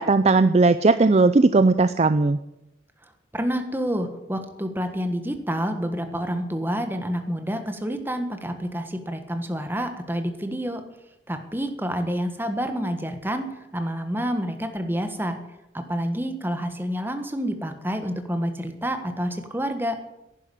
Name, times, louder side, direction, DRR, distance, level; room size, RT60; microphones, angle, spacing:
voice 1, 0.0-2.4, right 3 dB, 35° right, 13 dB, 0.4 m, -17 dB
voice 2, 3.3-10.8 11.3-15.4 15.7-20.0, equal, 10° right, 7 dB, 1.5 m, -28 dB
11.0 x 11.0 x 9.9 m, 0.90 s
head